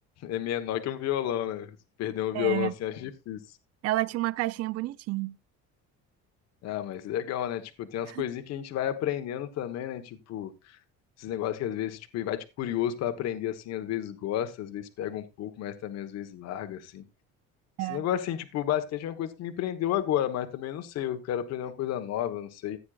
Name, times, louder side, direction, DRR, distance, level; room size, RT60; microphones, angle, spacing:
voice 1, 0.2-3.4 6.6-10.8 11.2-17.0 17.9-22.8, left 11 dB, 55° left, 1.2 m, -32 dB
voice 2, 2.3-2.7 3.8-5.4 8.1-8.2 17.8-18.1, right 17 dB, 55° right, 0.5 m, -30 dB
15.0 x 9.4 x 2.4 m
cardioid pair, 155°, 31 cm